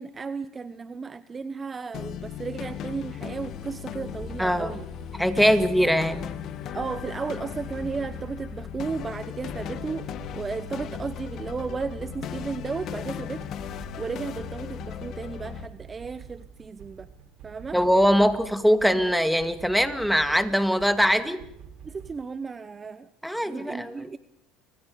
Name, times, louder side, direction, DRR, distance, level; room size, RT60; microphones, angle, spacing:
voice 1, 0.0-4.9 5.5-5.6 6.7-17.1 17.4-17.8 18.2-18.3 18.9-19.0 21.8-23.1 23.4-24.2, right 5 dB, 25° right, 13 dB, 0.9 m, -34 dB
sound 1, 1.9-15.7, left 9 dB, 55° left, 2.0 m, -37 dB
sound 2, 4.0-22.1, right 7 dB, 60° right, 4.2 m, -47 dB
voice 2, 4.4-4.7 5.2-6.3 17.7-21.4 23.2-24.1, equal, ahead, 9 dB, 2.2 m, -22 dB
30.0 x 25.0 x 5.1 m, 0.76 s
supercardioid pair, 110°, 0 cm